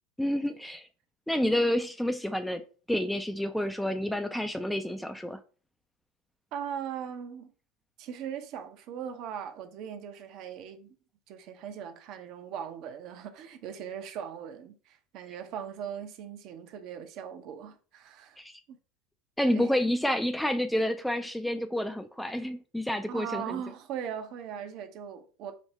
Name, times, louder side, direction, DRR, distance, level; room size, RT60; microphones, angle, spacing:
voice 1, 0.2-0.9 1.3-2.6 2.9-5.4 18.4-18.5 19.4-23.6, left 1 dB, 5° left, 0.3 m, -29 dB
voice 2, 6.5-7.5 8.0-10.9 11.3-18.4 19.4-19.7 23.1-25.5, right 8 dB, 50° right, 0.5 m, -39 dB
5.0 x 2.1 x 3.2 m
figure-of-eight pair, 75°, 0 cm